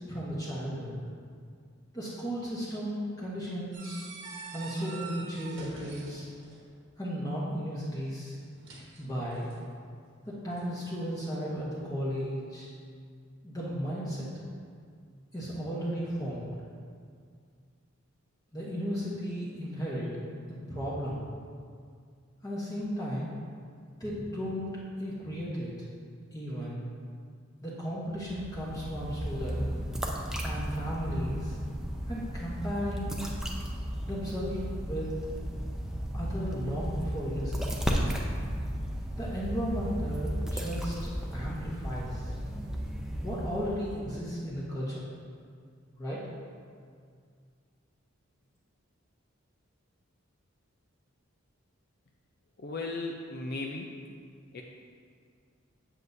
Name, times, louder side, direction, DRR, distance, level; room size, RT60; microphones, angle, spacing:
voice 1, 0.1-1.0 1.9-4.1 4.5-6.3 7.0-8.4 9.0-9.5 10.3-12.7 13.4-14.4 15.3-16.5 18.5-20.1 20.5-21.2 22.4-23.3 24.0-24.7 25.0-25.7 26.3-26.9 27.6-29.7 30.4-31.6 32.1-33.2 34.0-35.1 36.1-37.6 39.2-42.3 43.2-45.0 46.0-46.2, equal, 15° left, -8 dB, 1.0 m, -35 dB
sound 1, 3.7-6.8 8.4-9.7 10.5-11.0, right 4 dB, 60° right, 1.3 m, -46 dB
sound 2, 28.2-44.1, equal, 5° right, 0.5 m, -34 dB
voice 2, 52.6-53.9 54.5-54.6, left 2 dB, 50° left, 0 dB, 0.5 m, -36 dB
7.8 x 7.6 x 2.7 m, 2.1 s
head